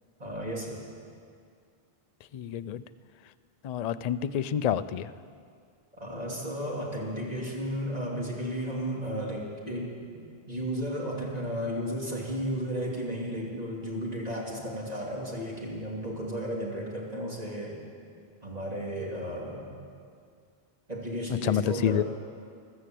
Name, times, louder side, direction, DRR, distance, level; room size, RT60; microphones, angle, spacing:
voice 1, 0.2-0.8 5.9-17.8 18.4-19.7 20.9-22.0, equal, 40° right, -3 dB, 2.8 m, -34 dB
voice 2, 2.3-2.8 3.6-5.1 21.3-22.0, left 9 dB, 55° left, 14 dB, 0.5 m, -28 dB
15.0 x 13.0 x 7.7 m, 2.2 s
omnidirectional pair, 1.0 m